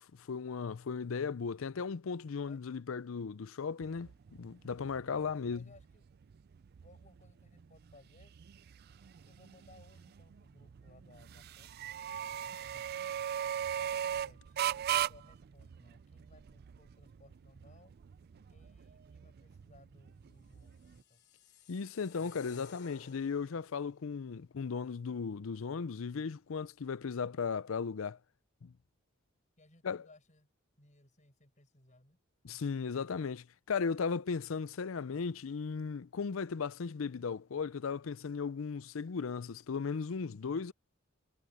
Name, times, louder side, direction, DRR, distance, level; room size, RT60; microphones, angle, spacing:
voice 1, 0.0-4.1 4.4-5.6 21.7-28.2 28.6-28.7 29.8-30.0 32.4-40.7, left 5 dB, 75° left, 0.5 m, -36 dB
sound 1, 3.8-21.0, right 10 dB, 50° right, 0.4 m, -40 dB
voice 2, 5.0-6.0 6.8-8.3 9.3-11.9 12.4-13.2 13.8-17.9 18.3-21.2 29.6-30.5 30.8-32.2, left 2 dB, 40° left, 5.8 m, -62 dB
sound 2, 20.6-23.8, left 5 dB, 55° left, 3.0 m, -56 dB
head